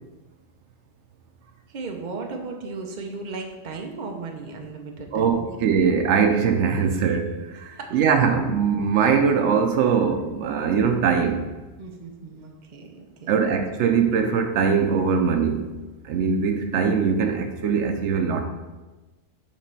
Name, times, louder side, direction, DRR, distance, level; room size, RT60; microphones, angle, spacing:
voice 1, 1.7-5.6 7.5-8.2 11.8-13.5, right 4 dB, 45° right, 3 dB, 0.8 m, -36 dB
voice 2, 5.1-11.4 13.3-15.7 16.0-18.5, right 6 dB, 80° right, 6 dB, 0.9 m, -21 dB
7.2 x 3.2 x 5.3 m, 1.2 s
omnidirectional pair, 1.2 m